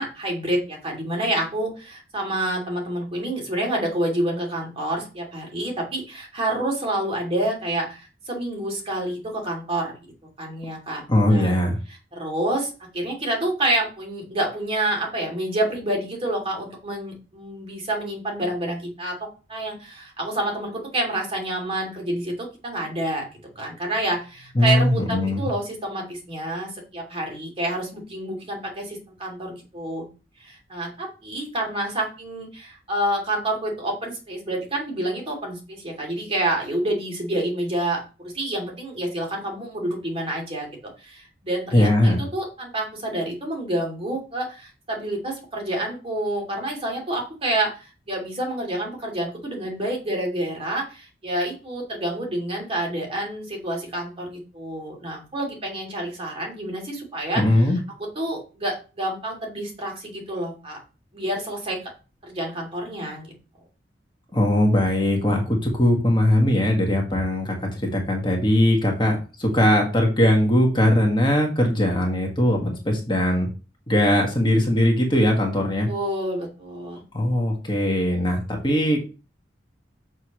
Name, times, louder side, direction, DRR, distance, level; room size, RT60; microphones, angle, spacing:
voice 1, 0.0-9.9 10.4-11.0 11.3-11.6 12.1-19.1 19.5-23.2 23.6-30.0 30.4-40.7 41.0-57.4 58.2-60.8 61.1-61.8 62.2-63.3 75.9-77.0, right 1 dB, 30° right, 0 dB, 2.6 m, -28 dB
voice 2, 11.1-11.8 24.5-25.5 41.7-42.2 57.3-57.8 64.3-73.5 73.9-75.9 77.1-79.0, left 1 dB, 25° left, 1 dB, 1.5 m, -20 dB
6.7 x 6.4 x 3.0 m, 0.33 s
head